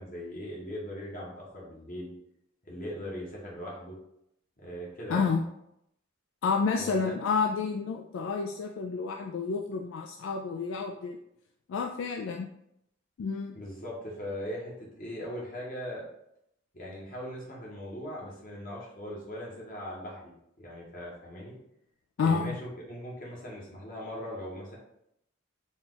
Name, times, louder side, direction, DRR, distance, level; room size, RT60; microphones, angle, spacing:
voice 1, 0.0-2.1 2.6-4.0 4.6-5.3 6.8-7.1 13.5-16.0 16.7-21.6 22.2-24.7, equal, 45° left, -4 dB, 1.2 m, -40 dB
voice 2, 5.1-5.4 6.4-11.2 11.7-12.5 13.2-13.6 22.2-22.6, left 5 dB, 65° left, 2 dB, 0.3 m, -29 dB
4.2 x 2.4 x 3.8 m, 0.78 s
head